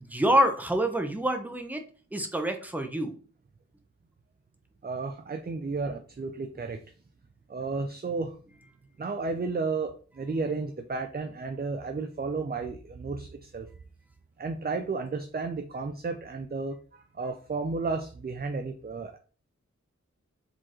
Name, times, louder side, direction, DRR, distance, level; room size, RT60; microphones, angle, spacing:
voice 1, 0.1-1.8 2.1-3.1, right 1 dB, 5° right, 5 dB, 0.7 m, -26 dB
voice 2, 4.8-6.8 7.5-8.4 9.0-13.7 14.4-19.2, right 4 dB, 35° right, 6 dB, 0.4 m, -33 dB
5.0 x 3.6 x 3.0 m, 0.41 s
wide cardioid pair, 60°, 29 cm